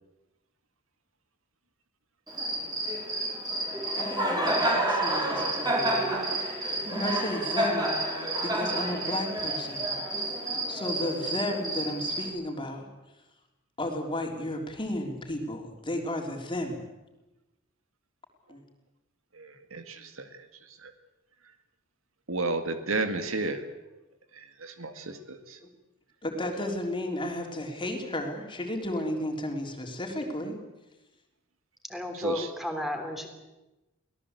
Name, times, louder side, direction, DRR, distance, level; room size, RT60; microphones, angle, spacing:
Cricket, 2.3-12.3, right 1 dB, 20° right, 5.3 m, -29 dB
voice 1, 3.8-6.0 6.6-8.0 8.4-9.9 10.7-12.8 13.8-16.8 18.5-18.6 26.2-30.6, left 1 dB, 25° left, 3 dB, 3.7 m, -33 dB
voice 2, 19.3-20.9 22.3-23.6 24.3-25.6 32.1-32.5, right 3 dB, 70° right, 8 dB, 2.1 m, -33 dB
voice 3, 31.9-33.3, left 1 dB, ahead, 5 dB, 3.6 m, -33 dB
24.5 x 17.5 x 8.2 m, 1.0 s
head